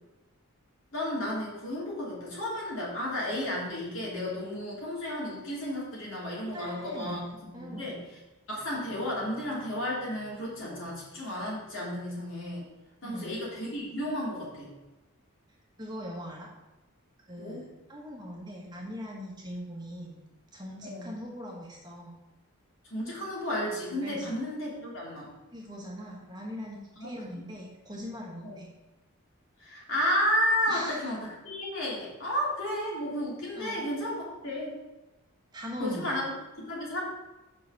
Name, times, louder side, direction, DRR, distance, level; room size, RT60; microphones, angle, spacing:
voice 1, 0.9-7.3 7.5-8.0 8.5-12.6 13.0-14.7 17.4-17.6 20.8-21.1 22.9-25.3 27.0-27.1 28.4-28.6 29.6-34.7 35.8-36.3 36.7-37.0, left 1 dB, 60° left, -5 dB, 2.8 m, -32 dB
voice 2, 6.5-8.1 13.0-13.4 15.8-16.5 17.3-20.2 20.5-22.2 24.0-24.4 25.5-28.7 30.7-31.1 33.5-33.8 35.5-36.3, equal, 20° right, -2 dB, 1.2 m, -41 dB
5.8 x 4.8 x 6.4 m, 1.1 s
head